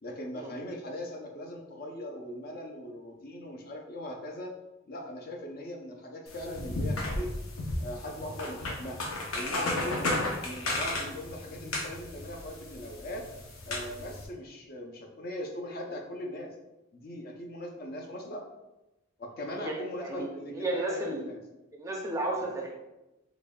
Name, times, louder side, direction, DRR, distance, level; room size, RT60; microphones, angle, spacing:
voice 1, 0.0-4.5 4.9-7.3 7.8-9.0 9.3-10.1 10.4-13.2 13.7-16.5 16.9-18.4 19.2-21.4 22.4-22.5, left 1 dB, 45° left, 1 dB, 0.5 m, -40 dB
sound 1, 6.3-14.2, left 2 dB, 85° left, 0.8 m, -34 dB
voice 2, 19.6-20.3 20.5-21.2 21.7-22.7, right 2 dB, 15° right, -1 dB, 0.4 m, -33 dB
3.9 x 3.5 x 2.2 m, 0.98 s
head